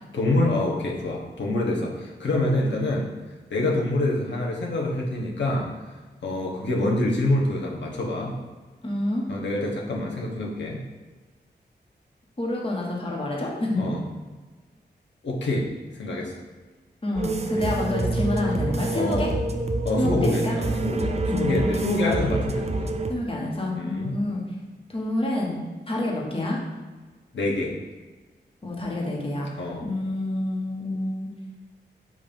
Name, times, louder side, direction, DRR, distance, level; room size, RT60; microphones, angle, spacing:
voice 1, 0.1-3.1 3.5-5.7 6.2-8.3 9.3-10.8 13.8-14.0 15.2-15.7 15.9-16.3 17.6-17.7 18.9-19.3 19.8-22.9 23.8-24.2 27.3-27.7 29.6-29.8, left 2 dB, 85° left, -2 dB, 1.2 m, -26 dB
voice 2, 8.8-9.3 12.4-14.0 17.0-19.3 20.0-20.6 21.2-21.7 23.1-24.4 24.9-25.6 25.9-26.6 28.6-31.3, left 1 dB, 30° left, -2 dB, 1.4 m, -28 dB
sound 1, 17.2-23.1, right 2 dB, 35° right, 0.5 m, -27 dB
7.8 x 2.7 x 5.3 m, 1.3 s
wide cardioid pair, 105°, 18 cm